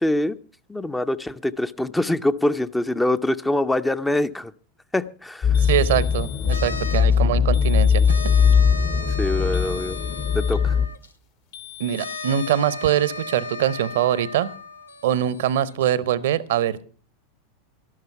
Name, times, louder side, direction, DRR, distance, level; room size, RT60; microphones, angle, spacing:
voice 1, 0.0-0.4 0.7-4.5 4.9-5.5 9.2-10.0 10.3-10.8, left 1 dB, 5° left, 12 dB, 0.5 m, -24 dB
sound 1, 5.4-10.9, left 6 dB, 30° left, 1.0 m, -20 dB
sound 2, 5.5-6.7 7.5-8.7 9.5-10.7 11.5-12.6, left 14 dB, 50° left, 1.4 m, -42 dB
voice 2, 5.6-8.0 11.8-14.5 15.0-16.8, right 10 dB, 60° right, 21 dB, 0.7 m, -23 dB
sound 3, 6.5-7.2 8.0-11.1 12.0-15.9, left 2 dB, 85° left, 1.0 m, -36 dB
12.5 x 12.0 x 5.7 m, 0.40 s
figure-of-eight pair, 85°, 0 cm